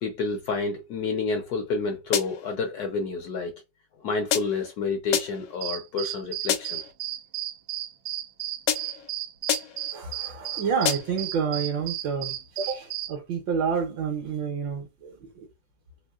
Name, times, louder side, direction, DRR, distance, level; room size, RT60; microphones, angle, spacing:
voice 1, 0.0-3.5 4.0-6.8, left 4 dB, 70° left, 1.0 m, -29 dB
sound 1, 2.1-2.6 4.3-4.7 5.1-5.6 6.5-6.9 8.7-9.1 9.5-9.9 10.8-11.3, left 9 dB, 85° left, 1.4 m, -29 dB
sound 2, 5.6-13.1, right 12 dB, 90° right, 1.4 m, -33 dB
voice 2, 9.9-15.5, right 6 dB, 70° right, 1.5 m, -29 dB
3.6 x 2.9 x 2.3 m
omnidirectional pair, 2.1 m